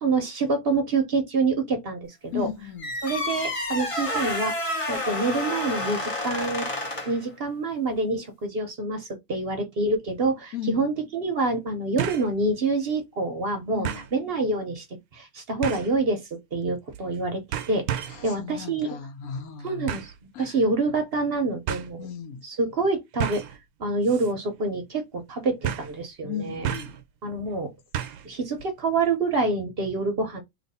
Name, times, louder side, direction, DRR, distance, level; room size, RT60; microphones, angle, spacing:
voice 1, 0.0-2.5 3.0-4.5 4.9-6.7 7.1-14.8 15.1-17.4 17.7-18.9 19.6-20.1 20.4-22.1 22.4-23.4 23.8-26.7 27.2-27.7 28.2-30.4, right 3 dB, 50° right, 0.8 m, -27 dB
voice 2, 2.3-2.9 10.5-10.9 13.7-14.0 18.1-19.9 20.3-20.6 22.0-22.4 26.2-27.0, left 8 dB, 80° left, 1.1 m, -35 dB
sound 1, 2.8-7.2, left 1 dB, 30° left, 0.7 m, -29 dB
sound 2, 10.1-10.2 12.0-12.3 12.8-12.9 13.8-14.1 15.6-16.0 16.9-17.2 17.5-18.3 19.9-20.2 21.2-21.3 21.7-21.9 23.2-23.6 24.0-24.3 24.6-24.7 25.6-26.0 26.6-27.0 27.9-28.3 28.6-28.7, right 10 dB, 80° right, 1.0 m, -31 dB
3.0 x 2.5 x 4.0 m
omnidirectional pair, 1.5 m